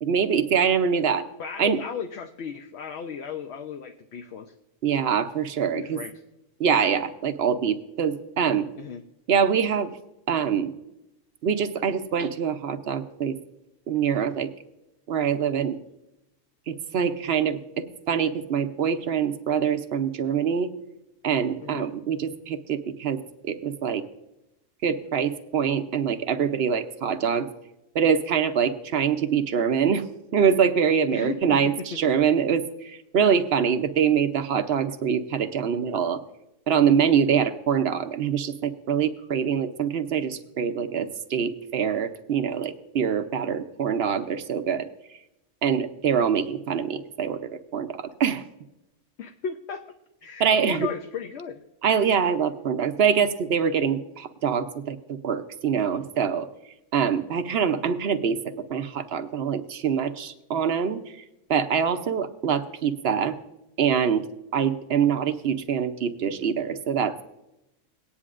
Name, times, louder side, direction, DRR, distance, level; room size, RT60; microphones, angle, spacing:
voice 1, 0.0-1.3 1.6-1.8 4.8-6.0 6.6-8.7 9.3-9.9 10.3-10.7 11.4-13.4 13.9-14.5 15.1-15.8 16.7-20.7 21.2-24.0 24.8-27.5 27.9-30.0 30.3-36.2 36.7-44.9 45.6-48.4 50.4-50.9 51.8-56.5 56.9-58.4 58.7-61.0 61.5-63.4 63.8-64.3 64.5-67.2, right 7 dB, 60° right, 9 dB, 0.8 m, -24 dB
voice 2, 1.4-4.5 5.7-6.1 8.8-9.0 21.6-21.9 31.1-32.0 37.0-37.3 49.2-49.8 50.2-51.6 57.5-57.6, left 7 dB, 65° left, 6 dB, 0.8 m, -35 dB
18.0 x 9.7 x 2.5 m, 0.92 s
omnidirectional pair, 1.3 m